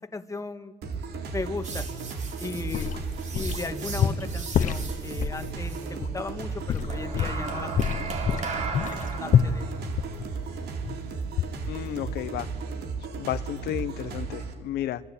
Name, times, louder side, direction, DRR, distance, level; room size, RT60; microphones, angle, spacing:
voice 1, 0.1-0.7 1.3-1.9 2.4-2.9 3.3-7.7 8.5-9.7, left 3 dB, 20° left, 7 dB, 1.8 m, -36 dB
sound 1, 0.8-14.5, right 4 dB, 70° right, 3.6 m, -35 dB
sound 2, 1.6-5.9 6.9-12.3, right 4 dB, 45° right, 3.9 m, -38 dB
sound 3, 2.5-3.7 4.0-5.4 6.0-6.1 6.7-7.5 7.7-11.0 11.4-11.8 12.1-12.2, left 8 dB, 50° left, 1.2 m, -26 dB
voice 2, 11.7-12.5 13.1-15.0, left 13 dB, 75° left, 11 dB, 1.0 m, -32 dB
25.5 x 25.0 x 8.7 m, 1.5 s
cardioid pair, 110°, 17 cm